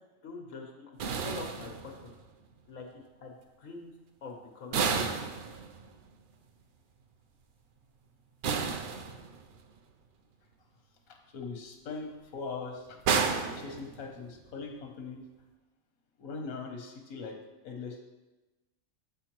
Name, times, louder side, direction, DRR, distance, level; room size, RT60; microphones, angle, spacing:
voice 1, 0.2-1.9 2.7-2.9 3.2-3.9 4.2-5.1, left 4 dB, 65° left, 1 dB, 1.4 m, -44 dB
sound 1, 1.0-2.3 4.7-6.1 8.4-9.6 13.0-14.4, right 5 dB, 90° right, 0.4 m, -32 dB
voice 2, 11.1-13.2 13.5-15.2 16.2-17.4 17.6-18.0, left 4 dB, 85° left, 3 dB, 1.4 m, -41 dB
7.2 x 6.2 x 3.0 m, 1.1 s
omnidirectional pair, 1.4 m